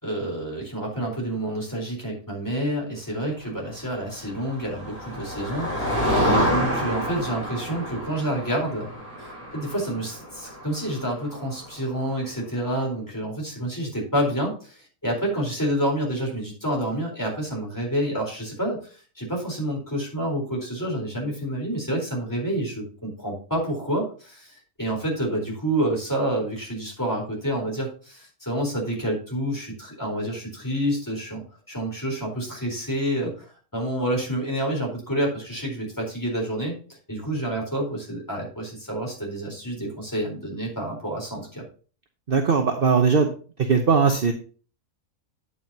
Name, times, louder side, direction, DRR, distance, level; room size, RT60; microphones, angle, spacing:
voice 1, 0.0-8.9 9.2-18.8 19.2-31.4 31.7-36.7 37.1-41.6, right 1 dB, 15° left, -1 dB, 4.2 m, -28 dB
Motor vehicle (road), 4.1-11.9, equal, 10° right, 5.0 m, -28 dB
voice 2, 42.3-43.3 43.6-44.3, right 5 dB, 45° right, 4 dB, 1.0 m, -19 dB
9.1 x 8.7 x 2.9 m, 0.39 s
omnidirectional pair, 1.5 m